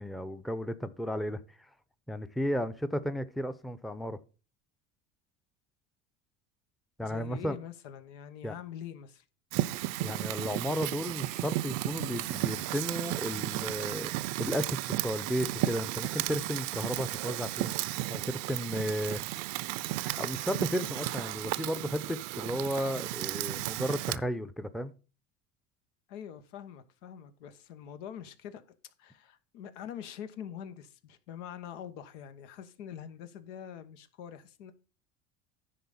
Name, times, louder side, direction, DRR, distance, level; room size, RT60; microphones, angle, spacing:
voice 1, 0.0-1.4 2.1-4.2 7.0-7.6 8.4-8.5 10.0-14.1 14.4-17.7 18.1-19.2 20.1-24.9, equal, ahead, 0.6 m, -34 dB
voice 2, 7.0-9.2 26.1-28.6 29.0-34.7, left 9 dB, 90° left, 1.2 m, -44 dB
Fire, 9.5-24.2, right 17 dB, 65° right, 0.6 m, -34 dB
10.0 x 4.0 x 7.1 m
supercardioid pair, 105°, 35 cm